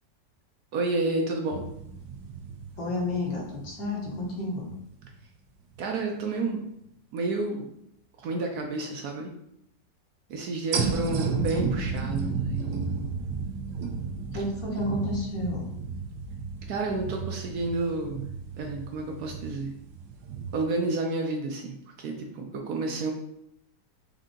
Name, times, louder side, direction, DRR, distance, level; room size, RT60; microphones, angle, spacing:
voice 1, 0.7-1.6 5.8-6.6 7.1-7.7 8.2-9.3 10.3-13.1 16.7-18.3 18.6-19.7 20.5-23.1, right 3 dB, 70° right, 2 dB, 1.0 m, -30 dB
Long Laser Shots, 1.5-5.2 5.7-5.8 10.7-20.6, right 5 dB, 90° right, 1.4 m, -33 dB
voice 2, 2.8-4.7 11.2-11.4 14.3-15.7, left 2 dB, 55° left, -3 dB, 1.6 m, -31 dB
4.9 x 2.7 x 3.7 m, 0.76 s
omnidirectional pair, 1.9 m